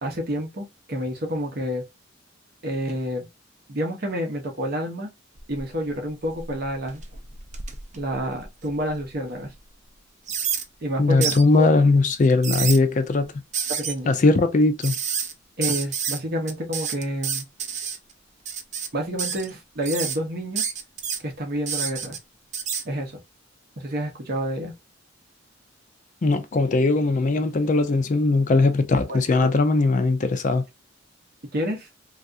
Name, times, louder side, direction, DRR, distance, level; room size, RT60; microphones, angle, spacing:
voice 1, 0.0-1.8 2.6-3.3 3.7-5.1 5.5-7.0 8.0-9.5 10.8-11.7 13.7-14.1 15.6-17.5 18.9-20.6 21.2-22.2 22.8-23.2 23.8-24.7 29.1-29.2 31.5-31.9, equal, 55° right, 0.8 m, -29 dB
sound 1, 5.4-5.9 6.3-8.9 9.4-9.5 10.3-10.6 11.2-11.4 12.2-12.8 13.5-13.9 14.8-15.3 15.6-16.2 16.5-18.0 18.5-18.9 19.2-19.5 19.8-20.2 20.6-21.2 21.7-22.2 22.5-22.8, right 7 dB, 40° right, 0.5 m, -29 dB
voice 2, 11.0-13.3 14.1-14.9 26.2-30.6, left 3 dB, 40° left, 0.4 m, -19 dB
3.2 x 2.4 x 2.5 m
head